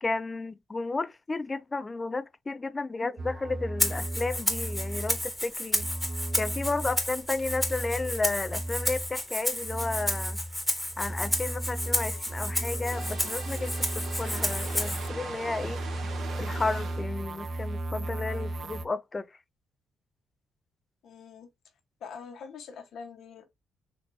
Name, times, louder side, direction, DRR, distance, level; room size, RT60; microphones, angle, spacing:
voice 1, 0.0-5.9 6.4-10.4 11.0-15.8 16.4-19.3, left 3 dB, 25° left, 0.3 m, -33 dB
sound 1, 3.2-5.4 5.7-9.2 9.5-18.9, right 1 dB, 45° right, 0.4 m, -35 dB
Rattle (instrument), 3.8-15.1, left 1 dB, ahead, 1.2 m, -32 dB
sound 2, 12.9-17.1, right 4 dB, 65° right, 1.1 m, -41 dB
voice 2, 21.0-21.5 22.0-23.4, left 6 dB, 70° left, 1.1 m, -44 dB
4.3 x 3.0 x 2.6 m
cardioid pair, 90°, 0 cm